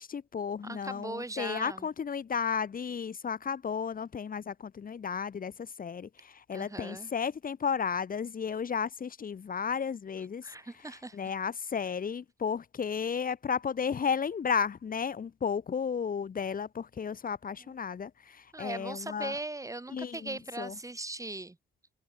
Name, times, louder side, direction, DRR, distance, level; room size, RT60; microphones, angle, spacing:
voice 1, 0.0-10.5 10.8-19.4 19.9-20.8, left 6 dB, 45° left, 3.9 m, -33 dB
voice 2, 0.6-1.9 6.5-7.1 10.4-11.2 18.5-21.6, right 2 dB, 15° right, 7.7 m, -39 dB
cardioid pair, 90°, 20 cm